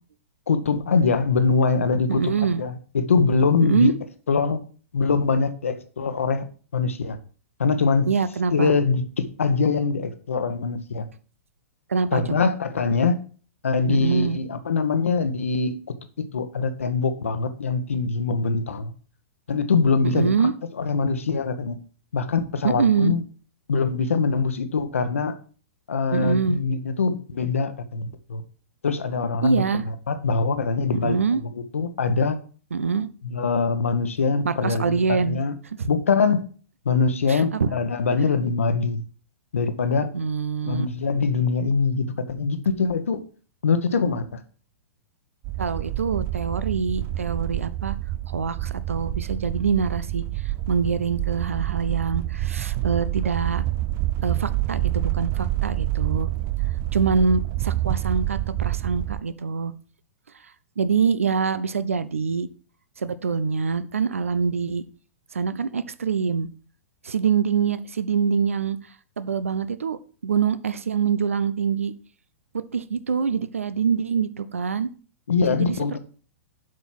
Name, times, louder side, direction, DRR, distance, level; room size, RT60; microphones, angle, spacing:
voice 1, 0.5-3.9 4.3-4.6 4.9-6.4 6.7-7.2 7.6-8.1 8.5-11.1 12.1-13.2 13.6-18.9 19.5-20.5 20.8-21.8 22.1-23.2 23.7-25.4 25.9-28.4 28.8-29.6 30.1-31.2 31.5-32.4 33.2-35.5 35.9-36.5 36.8-39.0 39.5-40.1 40.6-43.2 43.6-44.4 75.3-76.0, left 4 dB, 70° left, 10 dB, 1.1 m, -23 dB
voice 2, 2.1-2.6 3.6-3.9 8.1-8.7 11.9-12.5 13.9-14.4 20.0-20.5 22.6-23.1 26.1-26.6 29.4-29.8 30.9-31.4 32.7-33.1 34.4-35.4 35.8-35.9 37.3-37.8 40.1-40.9 45.6-48.0 48.3-50.2 50.7-53.6 54.2-56.3 56.9-59.7 60.8-62.5 63.0-64.8 65.3-66.5 67.0-68.8 69.2-71.9 72.5-74.9 75.5-75.8, right 5 dB, 70° right, 14 dB, 0.7 m, -24 dB
sound 1, 45.4-59.2, right 16 dB, 30° right, 0.4 m, -27 dB
7.8 x 5.4 x 5.9 m, 0.41 s
figure-of-eight pair, 105°, 8 cm